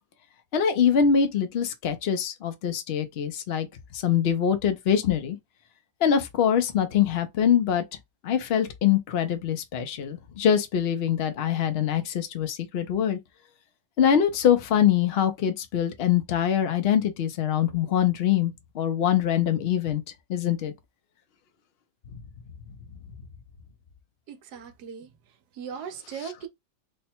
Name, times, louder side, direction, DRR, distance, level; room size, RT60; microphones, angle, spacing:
voice 1, 0.5-3.7 3.9-5.4 6.0-7.8 8.2-13.2 14.0-20.0 20.3-20.7 26.1-26.3, left 8 dB, 65° left, 0.6 m, -24 dB
voice 2, 24.3-25.1 25.6-26.5, right 7 dB, 65° right, 1.2 m, -38 dB
3.4 x 2.1 x 4.3 m
omnidirectional pair, 2.0 m